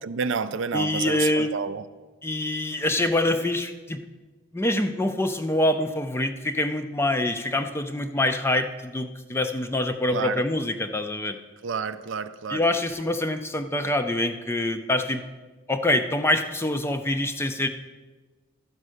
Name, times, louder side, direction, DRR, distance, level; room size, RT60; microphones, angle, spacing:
voice 1, 0.0-1.8 10.1-10.4 11.6-12.6, right 5 dB, 60° right, 0.4 m, -29 dB
voice 2, 0.7-1.5 2.2-4.0 4.5-11.4 12.5-15.2 15.7-17.7, left 1 dB, 10° left, 0.4 m, -25 dB
12.0 x 5.4 x 6.3 m
head